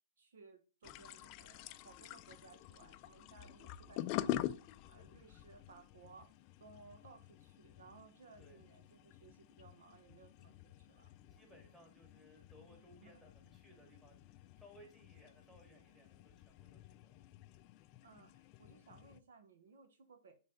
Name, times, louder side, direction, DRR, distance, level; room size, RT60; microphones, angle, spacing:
voice 1, 0.2-4.5 4.9-6.3 6.6-11.1 13.0-13.2 18.0-20.4, right 4 dB, 70° right, 7 dB, 1.2 m, -61 dB
sound 1, 0.8-19.2, left 13 dB, 35° left, 0.4 m, -47 dB
voice 2, 10.9-17.2, equal, 5° right, 1 dB, 2.1 m, -63 dB
5.3 x 3.5 x 5.5 m, 0.35 s
hypercardioid pair, 140°, 0 cm